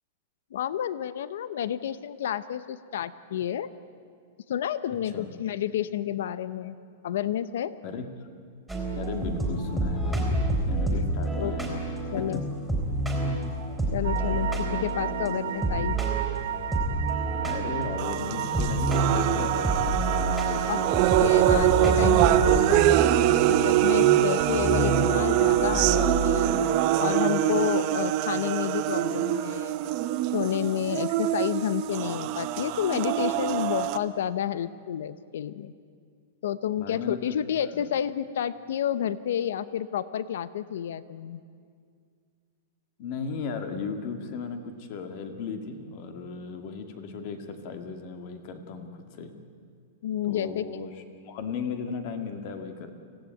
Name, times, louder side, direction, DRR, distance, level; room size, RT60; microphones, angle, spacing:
voice 1, 0.5-3.7 4.5-6.8 7.0-7.7 11.4-11.8 12.1-12.4 13.9-16.0 20.7-20.8 21.2-26.5 27.0-29.8 30.3-35.7 36.4-41.4 50.0-50.7, left 10 dB, 75° left, 15 dB, 0.8 m, -30 dB
sound 1, 8.7-26.5, right 1 dB, ahead, 3.7 m, -29 dB
voice 2, 8.9-10.4 10.6-11.7 12.2-12.4 14.7-15.4 17.4-21.6 36.8-37.4 37.7-37.9 43.0-49.4 50.3-50.9 51.2-52.9, left 5 dB, 45° left, 6 dB, 2.3 m, -36 dB
sound 2, 14.0-22.9, right 11 dB, 75° right, 0.6 m, -34 dB
sound 3, 18.0-34.0, right 14 dB, 35° right, 0.9 m, -24 dB
25.0 x 16.5 x 9.2 m, 2.2 s
supercardioid pair, 165°, 0 cm